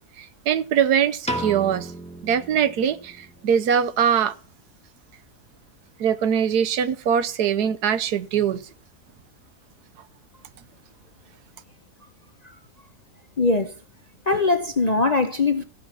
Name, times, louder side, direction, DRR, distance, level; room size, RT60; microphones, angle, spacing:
voice 1, 0.2-1.9 2.2-4.3 6.0-8.6, right 8 dB, 85° right, 1.3 m, -22 dB
Piano, 1.3-3.5, right 1 dB, 5° left, 0.9 m, -33 dB
voice 2, 13.4-13.7 14.3-15.6, left 3 dB, 40° left, 0.6 m, -21 dB
15.0 x 5.5 x 6.0 m
omnidirectional pair, 1.6 m